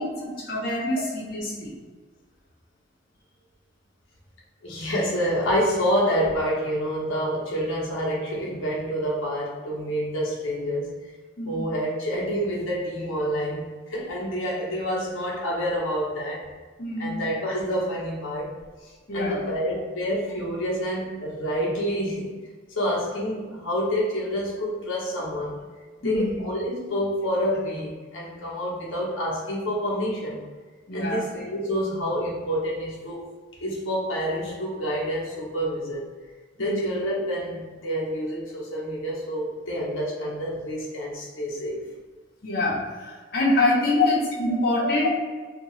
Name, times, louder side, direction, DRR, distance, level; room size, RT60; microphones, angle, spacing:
voice 1, 0.2-1.7 11.4-11.6 16.8-17.1 19.1-19.4 26.0-26.4 30.9-31.2 36.6-36.8 42.4-45.1, left 1 dB, 50° left, -6 dB, 0.7 m, -26 dB
voice 2, 4.6-10.9 11.5-16.4 17.0-18.5 18.8-22.3 22.7-25.6 26.0-30.4 30.9-33.2 33.6-36.0 36.6-41.8 43.3-43.4 44.0-44.1 45.0-45.1, equal, 85° left, -4 dB, 0.7 m, -28 dB
2.7 x 2.2 x 2.9 m, 1.4 s
head